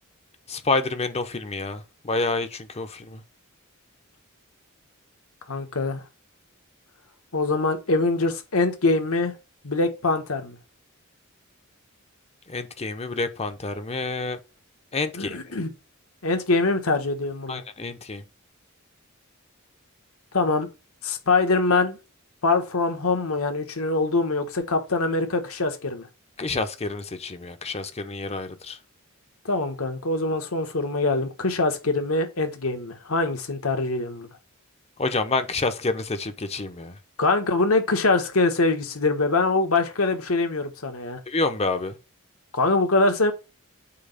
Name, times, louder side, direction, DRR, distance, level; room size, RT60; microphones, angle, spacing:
voice 1, 0.5-3.2 12.5-14.4 14.9-15.4 17.5-18.2 26.4-28.8 35.0-37.0 41.3-42.0, left 3 dB, 30° left, 0.8 m, -28 dB
voice 2, 5.5-6.0 7.3-9.3 9.6-10.6 15.1-15.7 16.2-17.6 20.3-20.7 21.0-22.0 22.4-26.1 29.4-34.3 37.2-41.2 42.5-43.3, left 3 dB, 75° left, 1.4 m, -23 dB
8.5 x 3.0 x 5.6 m
head